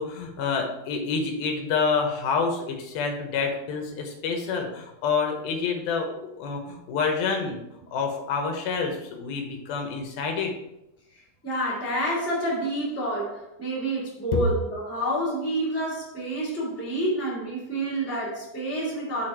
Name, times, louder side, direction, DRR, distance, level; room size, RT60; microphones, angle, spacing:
voice 1, 0.0-6.1 6.4-7.6 7.9-10.5, left 5 dB, 80° left, 2.9 m, -28 dB
voice 2, 11.4-19.3, right 1 dB, 5° left, 2.1 m, -28 dB
8.3 x 4.2 x 4.6 m
omnidirectional pair, 4.2 m